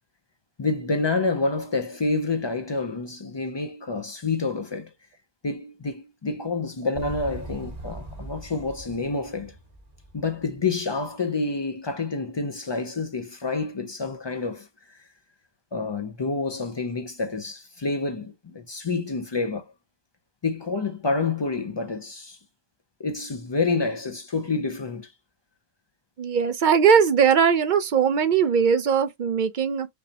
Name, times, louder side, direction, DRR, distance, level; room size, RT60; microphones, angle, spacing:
voice 1, 0.6-4.9 5.4-9.5 10.1-15.0 15.7-19.7 20.4-22.4 23.0-25.1, left 3 dB, 50° left, 0.3 m, -28 dB
Motorcycle, 6.9-10.9, right 2 dB, 40° right, 1.2 m, -41 dB
voice 2, 26.2-29.9, right 7 dB, 60° right, 0.6 m, -20 dB
5.3 x 2.0 x 2.7 m
omnidirectional pair, 1.1 m